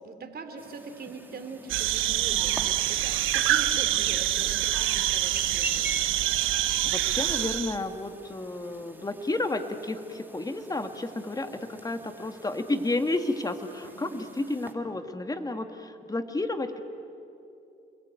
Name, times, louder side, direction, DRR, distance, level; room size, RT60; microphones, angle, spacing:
voice 1, 0.0-5.9 13.8-14.4, right 4 dB, 50° right, 7 dB, 3.4 m, -42 dB
Chirp tweet, 0.6-14.7, right 1 dB, 10° right, 2.7 m, -45 dB
sound 1, 1.7-7.8, right 13 dB, 85° right, 1.0 m, -26 dB
voice 2, 6.8-16.8, left 2 dB, 20° left, 7 dB, 2.1 m, -31 dB
29.0 x 22.0 x 9.2 m, 2.7 s
cardioid pair, 90°, 20 cm